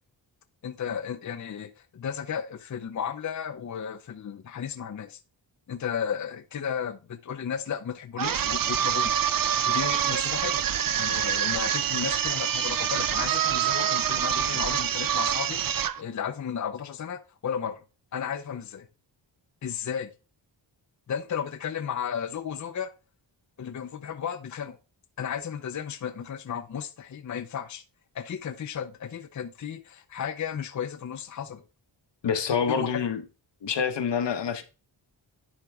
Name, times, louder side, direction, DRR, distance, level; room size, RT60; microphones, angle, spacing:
voice 1, 0.6-5.2 5.7-9.1 9.7-10.6 11.0-17.8 18.1-18.9 19.6-20.1 21.1-22.9 23.6-24.8 25.2-27.8 28.1-31.6 32.7-33.0, left 8 dB, 40° left, 0.6 m, -34 dB
sound 1, 8.2-16.0, right 9 dB, 50° right, 0.6 m, -26 dB
voice 2, 32.2-33.2 33.6-34.6, left 6 dB, 65° left, 1.1 m, -26 dB
10.5 x 4.4 x 3.6 m
wide cardioid pair, 95°, 45 cm